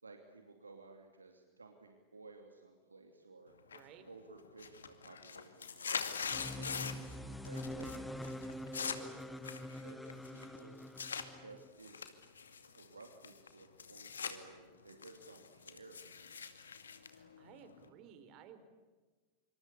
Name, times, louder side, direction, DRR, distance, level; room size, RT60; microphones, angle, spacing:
voice 1, 0.0-3.5 4.0-5.9 6.5-10.8 11.4-12.1 12.6-16.4, right 3 dB, 75° right, 4 dB, 2.8 m, -56 dB
sound 1, 3.7-4.1 4.4-7.1 7.4-8.0 8.2-11.3 11.8-14.4 14.7-17.9, left 6 dB, 70° left, 2.4 m, -43 dB
voice 2, 3.7-4.1 17.1-18.6, right 8 dB, 40° right, 10 dB, 4.3 m, -57 dB
sound 2, 6.3-11.7, left 1 dB, 5° left, 1.4 m, -45 dB
27.0 x 26.0 x 8.4 m, 1.4 s
figure-of-eight pair, 90°, 0 cm